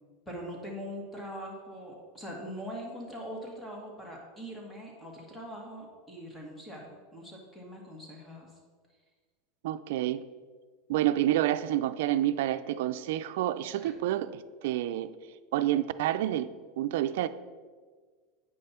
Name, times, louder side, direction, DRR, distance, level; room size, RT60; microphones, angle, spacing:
voice 1, 0.3-8.5 13.8-13.9, equal, 10° left, 1.8 m, -42 dB
voice 2, 9.6-10.2 10.9-15.1 15.5-16.5 16.8-17.3, right 13 dB, 75° right, 0.4 m, -28 dB
8.5 x 5.4 x 4.4 m
supercardioid pair, 130°, 0 cm